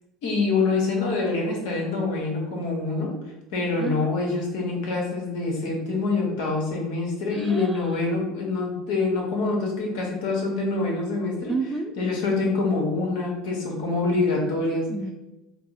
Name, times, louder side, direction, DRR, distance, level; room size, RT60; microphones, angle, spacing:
voice 1, 0.2-3.1 3.5-11.5 12.0-14.9, left 3 dB, 70° left, -1 dB, 1.1 m, -25 dB
voice 2, 3.8-4.2 7.3-8.0 11.5-12.0 14.9-15.1, right 3 dB, 15° right, 7 dB, 0.4 m, -31 dB
3.8 x 2.0 x 3.8 m, 0.96 s
hypercardioid pair, 80°, 0 cm